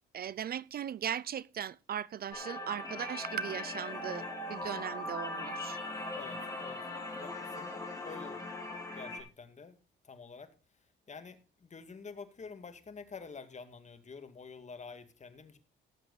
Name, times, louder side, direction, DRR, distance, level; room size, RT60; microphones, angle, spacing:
voice 1, 0.1-5.8, right 9 dB, 50° right, 0.5 m, -38 dB
sound 1, 2.3-9.2, left 2 dB, 15° left, 5.1 m, -40 dB
voice 2, 6.1-6.8 7.2-7.7 8.0-8.4 8.9-9.8 10.0-10.5 11.1-15.6, left 5 dB, 35° left, 2.1 m, -48 dB
17.0 x 7.8 x 4.1 m
cardioid pair, 90°, 20 cm